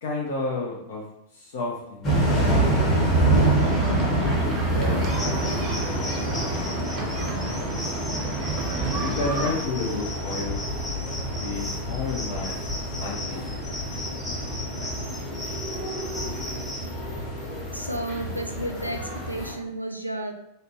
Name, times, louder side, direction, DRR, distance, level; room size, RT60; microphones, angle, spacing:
voice 1, 0.0-1.0 1.3-3.7 4.4-6.1 7.2-7.6 9.0-10.6 11.4-12.6 12.9-13.8, left 3 dB, 60° left, -3 dB, 0.5 m, -32 dB
sound 1, 2.0-19.5, right 1 dB, 30° left, 1.0 m, -27 dB
sound 2, 3.5-9.5, right 3 dB, 35° right, 0.6 m, -32 dB
sound 3, 5.1-16.9, left 1 dB, 10° left, 0.6 m, -37 dB
voice 2, 17.7-20.3, right 1 dB, 90° right, 3 dB, 0.3 m, -32 dB
2.7 x 2.1 x 2.9 m, 0.79 s
figure-of-eight pair, 90°, 0 cm